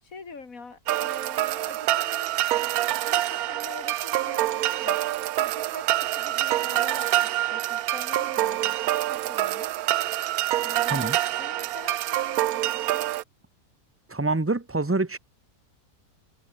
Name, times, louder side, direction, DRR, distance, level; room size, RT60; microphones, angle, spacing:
voice 1, 0.0-2.4 2.9-5.0 5.4-9.7 10.6-11.1 11.4-13.0, left 4 dB, 50° left, 3.2 m, -44 dB
sound 1, 0.9-13.2, right 14 dB, 70° right, 1.0 m, -26 dB
voice 2, 14.1-15.2, right 2 dB, 10° right, 0.7 m, -26 dB
omnidirectional pair, 1.8 m